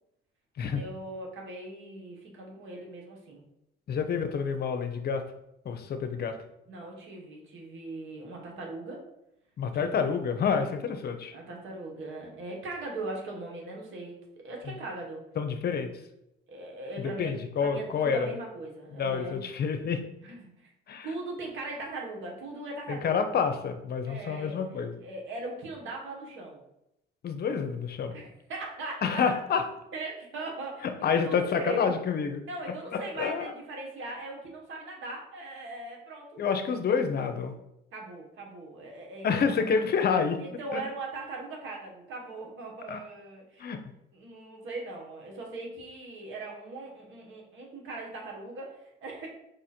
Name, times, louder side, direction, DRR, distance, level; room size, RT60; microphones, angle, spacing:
voice 1, 0.7-3.4 6.7-9.1 9.8-10.1 11.3-14.2 14.4-15.2 16.5-17.3 17.6-19.5 20.2-20.7 21.0-23.1 24.1-26.6 28.1-29.4 29.9-32.0 32.5-36.4 37.9-39.7 40.4-43.7 44.1-49.3, right 2 dB, 75° right, -1 dB, 1.4 m, -40 dB
voice 2, 3.9-5.2 5.6-6.4 9.6-11.3 15.4-15.9 17.0-18.3 18.9-20.0 20.9-21.1 22.9-25.0 27.2-28.1 29.0-29.6 31.0-32.4 32.9-33.5 36.4-37.5 39.2-40.4 40.7-40.8 42.9-43.0 43.6-43.8, left 6 dB, 55° left, 7 dB, 0.6 m, -28 dB
5.0 x 2.5 x 4.3 m, 0.84 s
cardioid pair, 90°, 20 cm